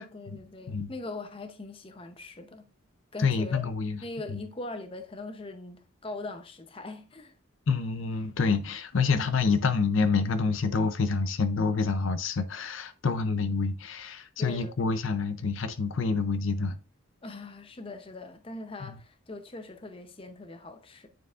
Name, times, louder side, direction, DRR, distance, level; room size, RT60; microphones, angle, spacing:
voice 1, 0.0-2.7 3.1-3.7 4.0-7.3 14.4-14.9 17.2-21.1, left 2 dB, 25° left, 0.6 m, -41 dB
voice 2, 3.2-4.0 4.3-4.4 7.7-16.8, left 4 dB, 70° left, 0.5 m, -27 dB
9.1 x 4.6 x 2.4 m
head